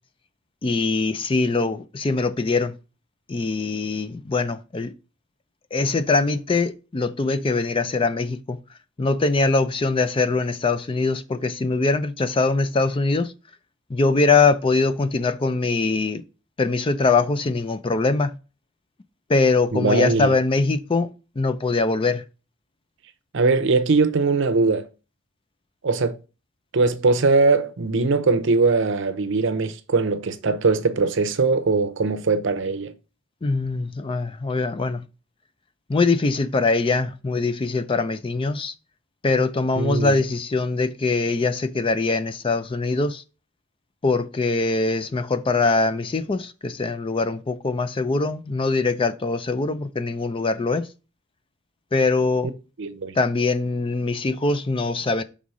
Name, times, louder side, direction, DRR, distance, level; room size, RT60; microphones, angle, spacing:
voice 1, 0.6-2.7 3.3-4.9 5.7-8.6 9.0-13.3 13.9-16.2 16.6-18.4 19.3-21.1 21.4-22.2 33.4-35.0 35.9-38.7 39.2-43.2 44.0-50.9 51.9-52.5 53.1-55.2, left 3 dB, 25° left, 0.4 m, -22 dB
voice 2, 19.7-20.3 23.3-24.9 25.8-26.2 26.7-32.9 39.8-40.2 52.8-53.1, right 3 dB, 65° right, 0.7 m, -21 dB
5.5 x 3.7 x 4.8 m
head